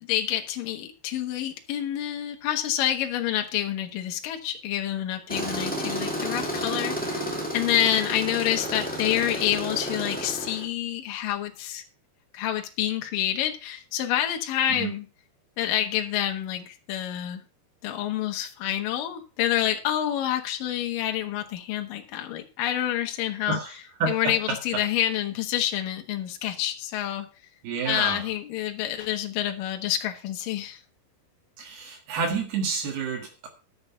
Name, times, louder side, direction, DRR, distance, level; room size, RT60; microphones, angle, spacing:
voice 1, 0.0-11.8 12.3-15.1 15.6-17.4 17.8-23.6 24.1-27.3 27.9-30.8, left 12 dB, 65° left, 4 dB, 2.7 m, -28 dB
Tools, 5.3-10.6, equal, 10° left, 0.4 m, -31 dB
voice 2, 23.5-24.8 27.6-28.2 31.6-33.5, right 4 dB, 70° right, 3 dB, 3.6 m, -30 dB
11.5 x 6.9 x 5.5 m, 0.33 s
omnidirectional pair, 4.7 m